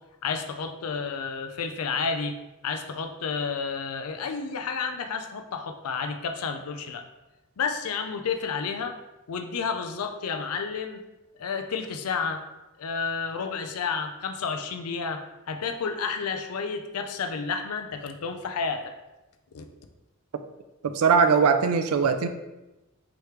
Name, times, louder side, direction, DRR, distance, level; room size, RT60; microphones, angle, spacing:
voice 1, 0.2-2.3 2.6-7.0 7.6-9.0 9.3-11.0 11.4-12.4 12.8-18.9 19.5-19.7, left 5 dB, 80° left, 6 dB, 0.5 m, -31 dB
voice 2, 20.8-22.3, right 5 dB, 80° right, 9 dB, 0.4 m, -21 dB
4.9 x 3.0 x 3.2 m, 1.0 s
head